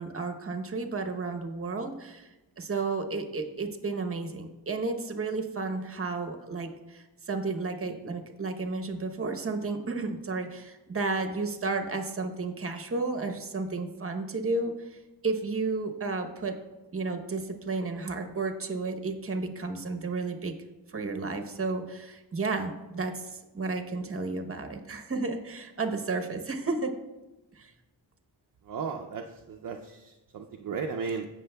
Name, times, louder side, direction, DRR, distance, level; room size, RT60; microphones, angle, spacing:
voice 1, 0.0-2.3 2.6-15.0 15.2-16.6 16.9-20.5 20.9-26.9 27.5-27.7, right 3 dB, 30° right, 5 dB, 0.9 m, -32 dB
voice 2, 28.6-31.3, right 5 dB, 50° right, 2 dB, 0.6 m, -35 dB
16.0 x 6.3 x 2.2 m, 1.1 s
wide cardioid pair, 115°, 42 cm